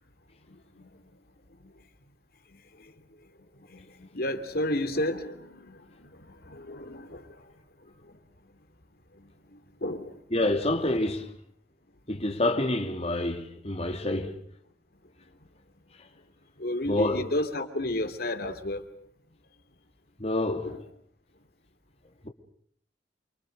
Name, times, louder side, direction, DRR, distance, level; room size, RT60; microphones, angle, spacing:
voice 1, 0.5-0.9 3.7-7.3 9.8-10.1 16.6-18.8 20.6-20.8, left 1 dB, 60° left, 3.0 m, -32 dB
voice 2, 10.3-11.3 12.1-14.4 16.8-17.3 20.2-20.7 22.2-22.3, left 1 dB, 35° left, 2.9 m, -27 dB
29.5 x 25.0 x 6.7 m
head